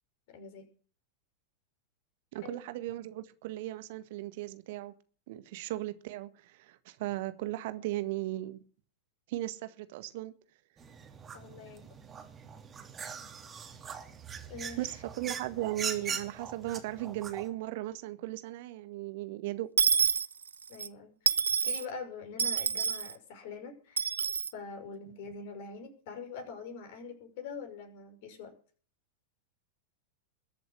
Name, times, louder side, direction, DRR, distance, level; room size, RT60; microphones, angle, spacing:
voice 1, 0.3-0.7 2.4-2.6 11.3-12.0 14.5-15.0 20.7-21.4 21.6-24.1 24.5-28.5, left 5 dB, 50° left, 5.7 m, -44 dB
voice 2, 2.3-4.9 5.3-8.6 9.3-10.3 14.8-19.7, right 16 dB, 50° right, 1.7 m, -37 dB
sound 1, 10.8-17.5, right 6 dB, 20° right, 3.0 m, -41 dB
Dishes pots and pans / Coin (dropping), 19.8-20.9 21.3-21.8 22.4-23.1 24.0-24.5, right 6 dB, 70° right, 0.6 m, -27 dB
21.5 x 7.8 x 7.5 m
figure-of-eight pair, 90°, 0 cm